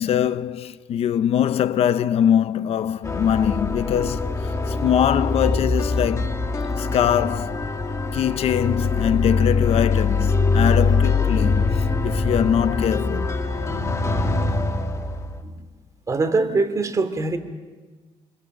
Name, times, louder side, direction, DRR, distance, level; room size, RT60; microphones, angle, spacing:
voice 1, 0.0-6.4 6.8-7.6 8.1-13.3, left 9 dB, 70° left, 0.7 m, -22 dB
sound 1, 3.0-15.4, left 4 dB, 25° left, 1.8 m, -23 dB
voice 2, 14.1-14.5 16.1-17.4, right 3 dB, 30° right, 2.5 m, -23 dB
29.0 x 21.5 x 6.6 m
cardioid pair, 105°, 11 cm